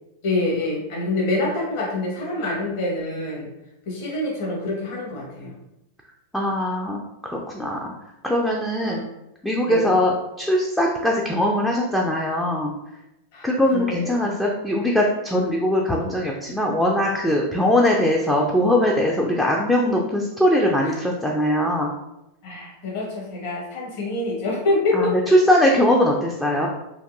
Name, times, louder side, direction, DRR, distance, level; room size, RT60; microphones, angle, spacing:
voice 1, 0.2-3.5 3.8-5.5 8.8-9.1 9.7-9.8 13.3-14.3 20.8-21.0 22.4-25.1, left 2 dB, 50° left, -3 dB, 1.1 m, -26 dB
voice 2, 6.3-7.9 8.2-9.0 9.4-12.7 13.4-21.9 24.9-25.1 25.5-26.7, left 1 dB, 5° left, -2 dB, 0.4 m, -21 dB
3.4 x 2.5 x 2.5 m, 0.89 s
figure-of-eight pair, 90°, 0 cm